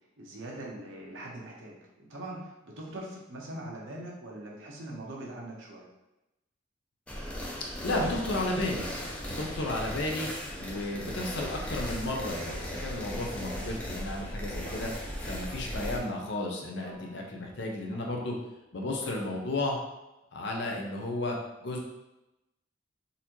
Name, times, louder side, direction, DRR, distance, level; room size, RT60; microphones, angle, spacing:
voice 1, 0.2-5.9, right 1 dB, 85° right, -2 dB, 0.9 m, -42 dB
sound 1, 7.1-16.0, equal, 5° left, 0.5 m, -37 dB
voice 2, 7.8-8.9 9.3-10.3 10.6-14.9 15.2-18.4 18.7-19.8 20.3-21.8, left 2 dB, 65° left, 0 dB, 0.7 m, -33 dB
Snare drum, 11.4-12.2 12.5-13.0 13.6-14.3 14.7-15.0 15.5-17.6 17.9-18.4 18.9-19.6, right 1 dB, 50° right, 0.7 m, -51 dB
4.0 x 2.7 x 2.9 m, 0.96 s
head